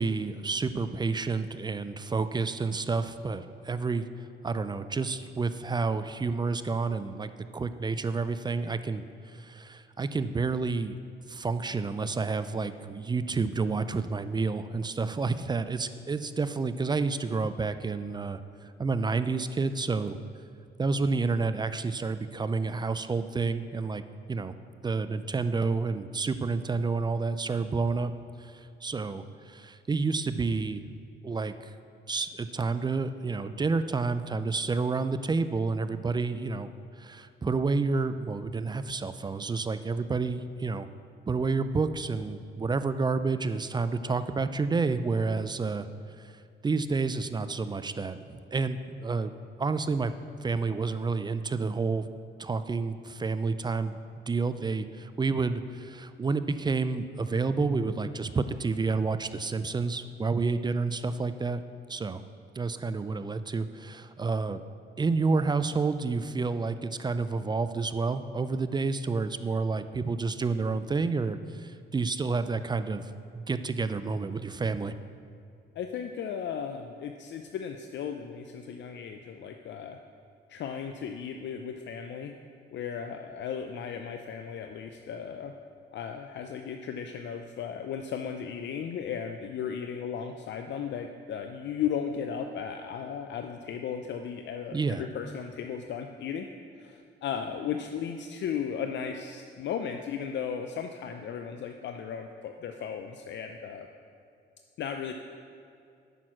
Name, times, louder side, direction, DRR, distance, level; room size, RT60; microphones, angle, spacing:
voice 1, 0.0-4.0 4.4-11.0 11.3-20.2 20.8-24.0 24.3-24.5 24.8-28.1 28.4-30.8 31.2-31.7 32.1-36.7 37.0-40.9 41.3-45.9 46.2-46.3 46.6-49.3 49.6-50.1 50.4-52.1 52.4-54.0 54.3-61.6 61.9-62.2 62.6-64.6 65.0-74.9 94.7-95.1, right 4 dB, 20° right, 12 dB, 0.4 m, -29 dB
voice 2, 75.8-80.0 80.5-82.3 82.7-85.5 85.9-96.5 96.8-103.9 104.8-105.1, left 7 dB, 65° left, 6 dB, 0.5 m, -35 dB
9.0 x 6.2 x 6.0 m, 2.4 s
cardioid pair, 90°, 20 cm